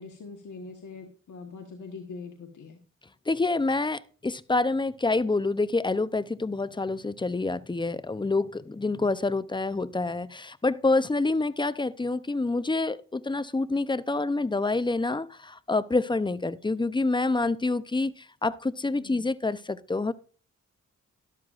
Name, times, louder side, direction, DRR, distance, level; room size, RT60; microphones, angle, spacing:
voice 1, 0.0-2.8 18.9-19.2, left 4 dB, 85° left, 1.3 m, -43 dB
voice 2, 3.3-20.1, left 3 dB, 15° left, 0.5 m, -27 dB
12.5 x 12.0 x 2.4 m
cardioid pair, 70°, 29 cm